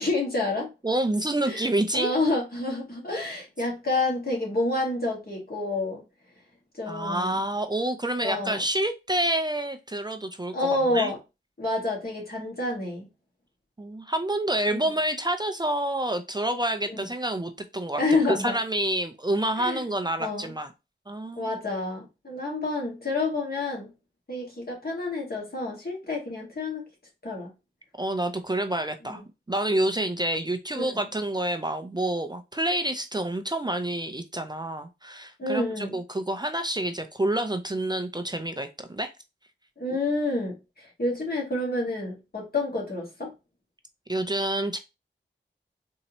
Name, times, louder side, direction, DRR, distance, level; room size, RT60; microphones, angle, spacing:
voice 1, 0.0-0.7 1.4-1.7 1.9-6.0 6.7-7.4 8.2-8.6 10.5-11.2 11.6-13.1 14.7-14.8 16.9-17.1 18.0-18.5 19.6-19.8 20.2-20.5 21.4-23.9 24.3-26.8 27.2-27.5 29.0-29.2 30.7-31.0 35.4-36.0 39.8-43.3, left 2 dB, 50° left, 1.9 m, -28 dB
voice 2, 0.8-2.1 6.9-10.5 10.9-11.1 13.8-18.0 18.3-20.7 21.1-21.5 28.0-29.2 29.5-39.1 44.1-44.8, right 1 dB, 20° right, 0.4 m, -28 dB
4.1 x 2.7 x 3.0 m
wide cardioid pair, 80°, 20 cm